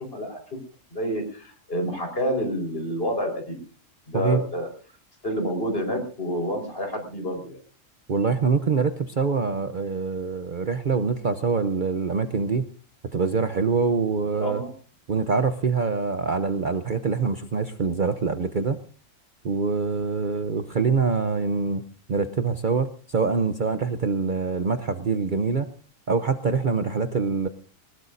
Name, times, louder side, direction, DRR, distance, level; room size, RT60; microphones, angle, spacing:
voice 1, 0.9-3.6 4.1-4.7 5.2-7.6 14.4-14.7, equal, 45° left, 3 dB, 4.9 m, -28 dB
voice 2, 8.1-12.7 13.1-14.6 15.1-18.8 19.4-21.8 22.1-25.7 26.1-27.5, right 5 dB, 45° right, 9 dB, 0.9 m, -24 dB
21.0 x 19.0 x 2.6 m, 0.39 s
omnidirectional pair, 1.3 m